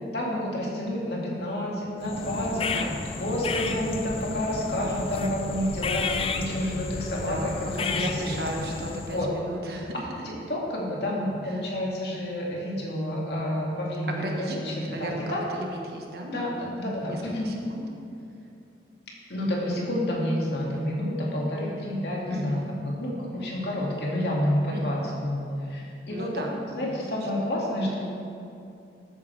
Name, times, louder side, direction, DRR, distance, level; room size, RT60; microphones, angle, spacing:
voice 1, 0.1-2.6 3.2-8.3 9.1-9.3 10.5-15.5 16.3-16.5 16.8-17.5 19.3-26.3 26.7-28.0, left 1 dB, 65° left, -4 dB, 2.4 m, -29 dB
sound 1, 2.0-9.3, left 4 dB, 30° left, 0.4 m, -32 dB
voice 2, 2.5-3.0 7.1-10.3 11.4-11.7 14.1-15.2 15.5-16.7 17.1-17.8 22.3-22.6 24.7-25.0 26.1-27.4, right 1 dB, 60° right, 1 dB, 1.4 m, -36 dB
13.5 x 9.3 x 3.4 m, 2.6 s
head